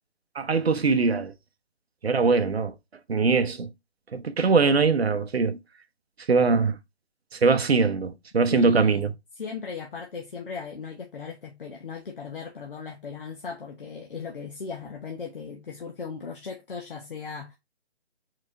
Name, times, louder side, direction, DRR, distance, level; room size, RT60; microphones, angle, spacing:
voice 1, 0.3-1.3 2.0-2.7 3.1-3.7 4.1-5.6 6.3-6.8 7.3-9.1, right 4 dB, 70° right, 0.9 m, -22 dB
voice 2, 8.5-17.5, left 5 dB, 55° left, 1.1 m, -37 dB
4.7 x 4.0 x 2.5 m
figure-of-eight pair, 160°, 33 cm